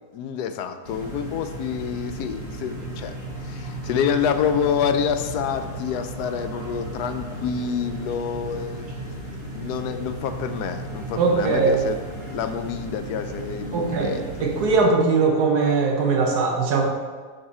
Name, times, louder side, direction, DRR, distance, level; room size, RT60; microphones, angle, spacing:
voice 1, 0.1-8.9 9.4-12.0 12.3-14.3, left 7 dB, 85° left, 8 dB, 1.2 m, -27 dB
sound 1, 0.8-14.8, right 1 dB, 40° right, 1.9 m, -35 dB
voice 2, 11.2-11.8 13.7-14.1 14.4-16.8, right 4 dB, 80° right, 1 dB, 1.6 m, -20 dB
6.8 x 6.4 x 4.3 m, 1.6 s
omnidirectional pair, 1.7 m